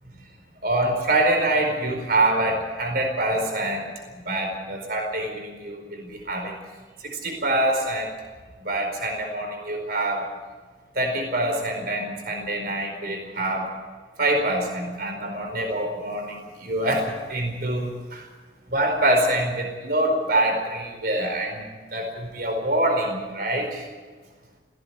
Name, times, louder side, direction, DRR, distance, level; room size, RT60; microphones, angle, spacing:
voice 1, 0.6-3.9 4.3-6.5 7.0-8.1 8.6-10.3 11.0-13.7 14.2-18.2 18.7-21.6 21.9-23.8, right 1 dB, 55° right, 3 dB, 4.6 m, -25 dB
18.0 x 16.5 x 9.4 m, 1.4 s
head